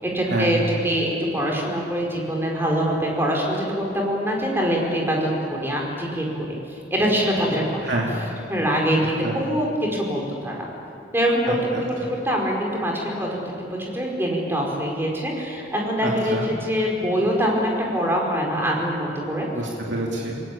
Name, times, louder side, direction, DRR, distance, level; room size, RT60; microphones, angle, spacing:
voice 1, 0.0-6.5 6.9-7.8 8.5-10.7 11.1-11.7 12.2-19.5, equal, 15° right, -1 dB, 4.8 m, -24 dB
voice 2, 7.8-8.1 9.2-9.4 11.7-11.8 16.0-16.5 19.5-20.4, right 2 dB, 80° right, -2 dB, 2.9 m, -27 dB
29.0 x 20.5 x 8.6 m, 2.6 s
head